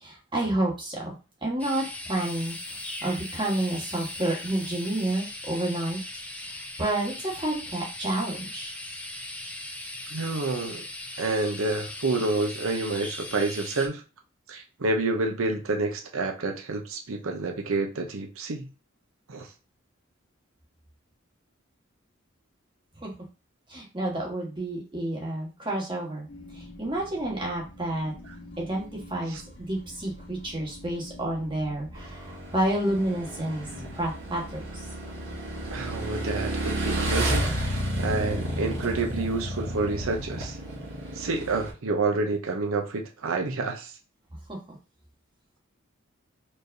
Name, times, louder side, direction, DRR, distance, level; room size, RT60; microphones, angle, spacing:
voice 1, 0.0-1.1 1.4-6.0 6.8-8.7 23.0-23.1 23.7-26.3 26.5-28.1 28.6-33.7 33.9-34.8 44.5-44.6, right 1 dB, 25° right, 1.3 m, -30 dB
sound 1, 1.6-13.9, left 1 dB, 5° left, 0.5 m, -39 dB
voice 2, 10.1-10.8 11.2-14.0 14.5-18.7 19.3-19.5 29.3-29.4 35.7-40.6 41.1-44.0, right 3 dB, 85° right, 0.7 m, -29 dB
sound 2, 26.3-39.5, left 1 dB, 60° left, 1.5 m, -47 dB
Motorcycle / Engine, 31.9-41.7, right 1 dB, 65° right, 1.4 m, -31 dB
4.5 x 3.2 x 2.6 m
head